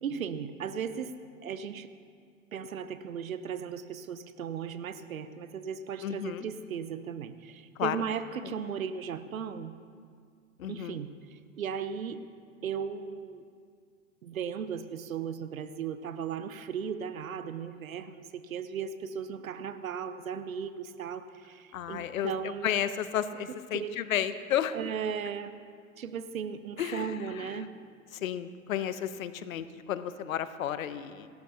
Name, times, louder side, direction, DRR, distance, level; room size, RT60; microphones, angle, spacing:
voice 1, 0.0-1.1 1.4-1.9 2.5-9.8 10.7-11.1 11.5-12.2 12.6-13.4 14.2-22.7 23.7-24.0 24.7-25.5 26.0-27.7, right 7 dB, 90° right, 12 dB, 0.9 m, -36 dB
voice 2, 6.0-6.5 7.8-8.0 8.4-8.5 10.6-11.0 21.7-24.8 26.8-27.7 28.1-31.3, left 10 dB, 80° left, 13 dB, 0.9 m, -33 dB
28.0 x 12.5 x 2.8 m, 2.2 s
hypercardioid pair, 90°, 40 cm